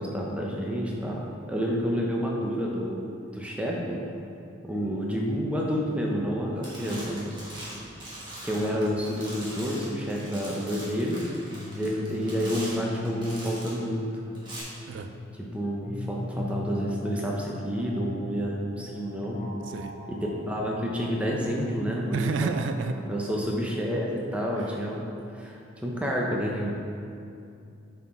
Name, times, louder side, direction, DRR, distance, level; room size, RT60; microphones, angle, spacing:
voice 1, 0.0-3.0 3.3-4.0 4.6-7.3 8.4-11.2 11.7-14.1 15.4-19.4 20.1-22.3 22.9-25.1 25.3-26.7, equal, 5° right, -2 dB, 0.7 m, -29 dB
sound 1, 6.1-6.4 6.6-13.8 14.3-14.6, right 1 dB, 25° right, 1.5 m, -42 dB
sound 2, 11.2-23.1, left 2 dB, 50° left, 0.5 m, -39 dB
voice 2, 19.6-20.0 22.1-23.0 24.6-24.8, right 4 dB, 70° right, 7 dB, 0.3 m, -30 dB
7.1 x 4.4 x 4.4 m, 2.5 s
head